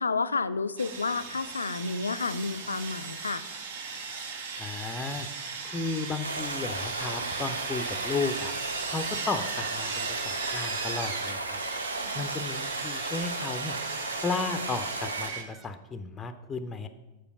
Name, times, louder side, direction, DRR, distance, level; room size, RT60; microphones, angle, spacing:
voice 1, 0.0-3.4, left 4 dB, 75° left, 13 dB, 0.3 m, -30 dB
Sawing, 0.8-15.4, right 5 dB, 60° right, 0.9 m, -37 dB
voice 2, 4.6-8.5 8.9-11.6 12.2-13.8 14.2-16.9, left 4 dB, 15° left, 9 dB, 0.5 m, -34 dB
sound 1, 6.2-15.3, right 2 dB, 80° right, 0.5 m, -35 dB
Bird, 7.8-11.6 12.0-14.6 15.0-15.7, right 7 dB, 30° right, 0.5 m, -49 dB
6.9 x 4.6 x 6.0 m, 1.1 s
figure-of-eight pair, 90°, 0 cm